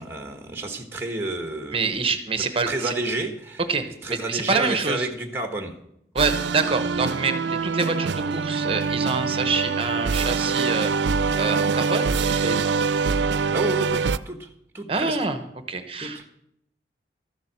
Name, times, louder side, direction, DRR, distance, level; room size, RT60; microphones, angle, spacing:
voice 1, 0.0-2.0 2.4-3.6 4.0-5.7 13.4-14.5 14.7-15.2 16.0-16.3, right 2 dB, 15° right, 4 dB, 1.2 m, -30 dB
voice 2, 1.7-2.9 3.7-5.1 6.1-12.7 14.9-15.4 15.7-16.2, right 4 dB, 30° right, 8 dB, 1.0 m, -26 dB
sound 1, 6.2-14.2, right 5 dB, 80° right, 0.4 m, -24 dB
13.5 x 7.5 x 7.3 m, 0.75 s
head